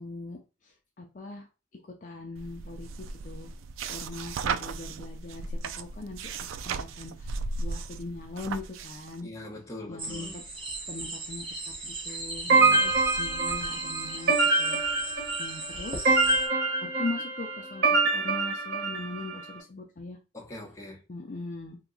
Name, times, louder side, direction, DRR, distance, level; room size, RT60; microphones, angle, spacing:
voice 1, 0.0-1.5 1.8-2.9 3.2-3.5 3.8-6.4 6.7-9.3 9.9-11.5 11.8-12.8 13.2-14.8 15.4-16.1 16.8-20.2 21.1-21.8, left 3 dB, 40° left, 0.5 m, -40 dB
sound 1, 2.4-9.2, right 4 dB, 80° right, 0.3 m, -36 dB
voice 2, 9.2-10.4 12.5-13.0 20.3-21.0, left 1 dB, 15° left, 0.8 m, -42 dB
sound 2, 10.0-16.5, right 2 dB, 25° right, 0.9 m, -37 dB
sound 3, 12.5-19.4, right 3 dB, 50° right, 1.3 m, -25 dB
2.9 x 2.2 x 3.8 m
head